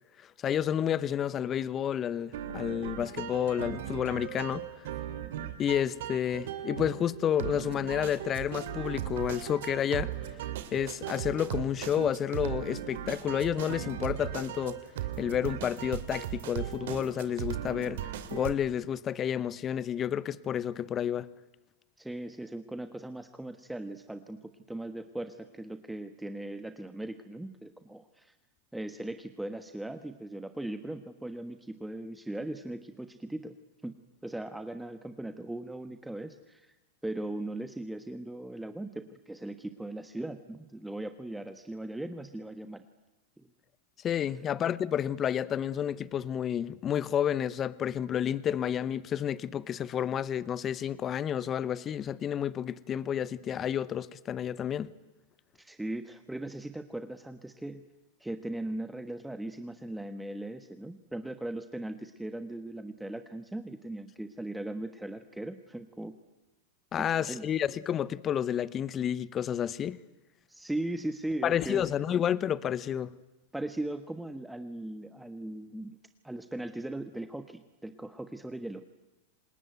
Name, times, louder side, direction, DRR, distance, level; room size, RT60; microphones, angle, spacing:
voice 1, 0.4-4.7 5.6-10.1 10.7-14.8 15.2-18.0 18.3-21.3 44.0-54.9 66.9-70.0 71.4-73.1, left 9 dB, 30° left, 0.8 m, -30 dB
sound 1, 2.3-18.5, right 11 dB, 70° right, 2.4 m, -38 dB
voice 2, 22.0-28.3 28.7-33.6 33.8-34.0 34.2-36.8 37.0-42.8 43.4-43.5 44.2-44.5 55.6-57.8 58.2-66.1 67.0-67.5 70.5-71.8 73.5-76.0 76.2-78.8, right 1 dB, 5° right, 1.2 m, -39 dB
27.0 x 20.5 x 9.2 m
hypercardioid pair, 100°, 0 cm